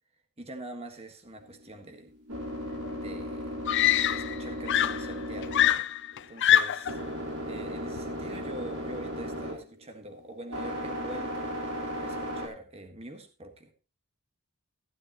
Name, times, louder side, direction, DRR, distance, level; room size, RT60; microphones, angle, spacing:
voice 1, 0.4-2.1 2.9-3.5 4.0-5.8 6.3-6.9 7.5-11.5 12.0-13.7, right 1 dB, 25° right, 5 dB, 1.6 m, -44 dB
sound 1, 1.4-12.5, equal, 75° right, 4.1 m, -36 dB
Screaming, 2.8-2.9 3.7-4.4 4.7-7.0 8.0-8.2, left 11 dB, 55° left, 0.5 m, -24 dB
15.5 x 11.5 x 3.0 m, 0.33 s
head